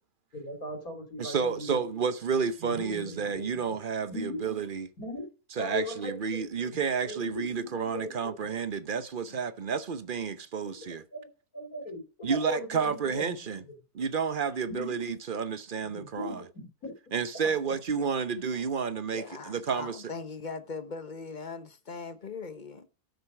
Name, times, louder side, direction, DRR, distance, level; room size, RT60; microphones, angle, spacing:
voice 1, 0.3-1.8 2.6-3.5 4.1-4.4 5.0-5.2 5.6-6.4 6.7-8.3 10.6-13.3 14.7-15.0 15.8-16.9 17.7-17.8, left 1 dB, 70° left, 3.3 m, -39 dB
voice 2, 1.2-4.9 5.6-11.0 12.2-13.6 13.9-16.4 17.1-20.0, right 6 dB, 45° right, 0.8 m, -31 dB
voice 3, 19.1-22.9, left 4 dB, 35° left, 1.1 m, -40 dB
12.5 x 6.5 x 4.9 m
omnidirectional pair, 1.6 m